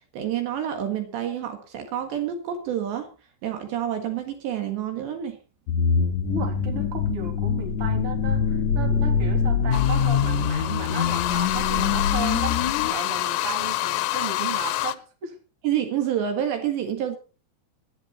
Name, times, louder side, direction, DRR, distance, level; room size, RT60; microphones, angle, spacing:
voice 1, 0.1-3.1 3.4-5.4 15.6-17.2, right 10 dB, 70° right, 6 dB, 3.7 m, -28 dB
sound 1, 5.7-12.9, left 6 dB, 55° left, 2.1 m, -24 dB
voice 2, 6.3-15.4, right 6 dB, 35° right, 3 dB, 3.4 m, -35 dB
sound 2, 9.7-15.0, left 16 dB, 85° left, 3.3 m, -27 dB
16.5 x 12.5 x 4.2 m, 0.35 s
omnidirectional pair, 5.4 m